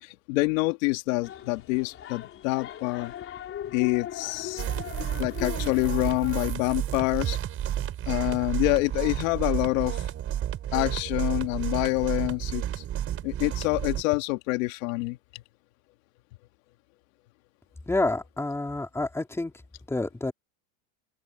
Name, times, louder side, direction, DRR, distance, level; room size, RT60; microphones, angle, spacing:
voice 1, 0.0-3.1 3.7-4.6 5.2-7.4 8.1-10.0 10.7-12.6 13.2-15.4, left 23 dB, 70° left, 2.0 m, -27 dB
sound 1, 1.2-6.5, left 10 dB, 30° left, 4.1 m, -39 dB
sound 2, 4.6-14.0, right 11 dB, 30° right, 4.0 m, -31 dB
voice 2, 17.9-19.5 19.9-20.3, left 2 dB, 5° left, 3.4 m, -28 dB
open air
supercardioid pair, 150°, 41 cm